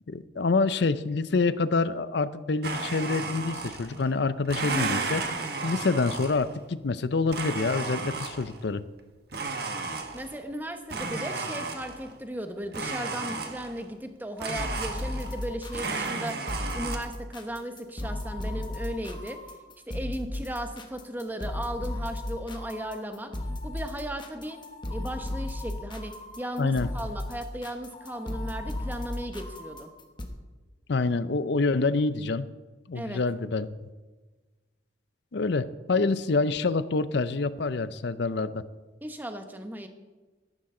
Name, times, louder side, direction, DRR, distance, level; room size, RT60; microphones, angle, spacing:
voice 1, 0.1-5.2 5.6-8.8 26.6-26.9 30.9-32.5 32.9-33.7 35.3-38.6, left 3 dB, 60° left, 15 dB, 0.5 m, -26 dB
Domestic sounds home sounds, 2.6-4.0 4.4-6.6 7.3-8.6 9.3-10.4 10.9-12.1 12.7-13.8 14.4-15.5 15.7-17.0, right 3 dB, 55° right, 1.4 m, -33 dB
voice 2, 10.1-16.4 16.7-19.4 19.9-23.3 23.6-24.6 24.9-29.9 32.9-33.2 39.0-39.9, equal, 10° right, 6 dB, 1.0 m, -36 dB
sound 1, 14.6-30.3, left 1 dB, 25° left, 1.2 m, -35 dB
13.5 x 12.5 x 3.8 m, 1.3 s
head